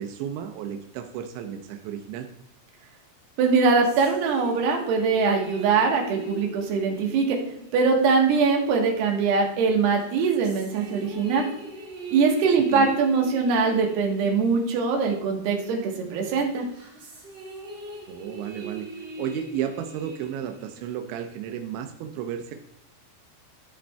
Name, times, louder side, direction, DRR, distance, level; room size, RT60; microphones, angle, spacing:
voice 1, 0.0-2.3 12.7-12.9 18.1-18.9 19.2-22.5, right 9 dB, 85° right, 5 dB, 2.6 m, -33 dB
sound 1, 3.4-9.3 9.8-15.9 16.3-21.4, right 2 dB, 30° right, 2.7 m, -42 dB
voice 2, 3.4-7.4 7.7-11.5 12.1-16.7, right 4 dB, 65° right, 0 dB, 2.9 m, -22 dB
13.0 x 5.0 x 3.4 m, 0.72 s
omnidirectional pair, 5.9 m